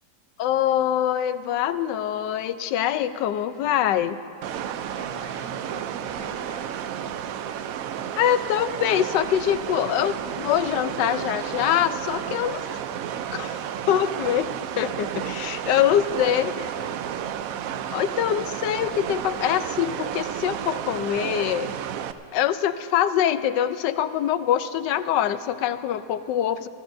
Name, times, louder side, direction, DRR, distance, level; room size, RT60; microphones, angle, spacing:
voice 1, 0.4-4.2 8.2-12.6 13.3-13.6 13.9-16.5 17.9-21.7 22.3-26.7, left 10 dB, 85° left, 12 dB, 1.2 m, -24 dB
sound 1, 4.4-22.1, right 9 dB, 70° right, 0.8 m, -32 dB
voice 2, 4.9-7.7 16.0-17.3, right 2 dB, 50° right, -4 dB, 2.8 m, -43 dB
28.5 x 14.0 x 2.6 m, 2.9 s
omnidirectional pair, 1.8 m